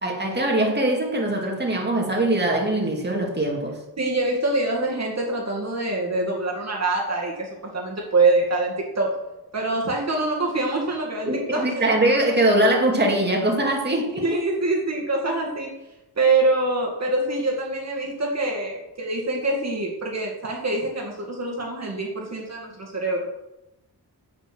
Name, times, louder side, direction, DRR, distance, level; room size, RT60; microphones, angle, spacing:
voice 1, 0.0-3.8 11.3-14.2, right 1 dB, 25° right, -1 dB, 2.4 m, -22 dB
voice 2, 4.0-9.1 9.5-11.8 13.8-13.9 14.2-15.7 16.2-23.3, right 2 dB, 45° right, -2 dB, 2.2 m, -25 dB
9.9 x 8.7 x 6.2 m, 0.94 s
wide cardioid pair, 130°, 38 cm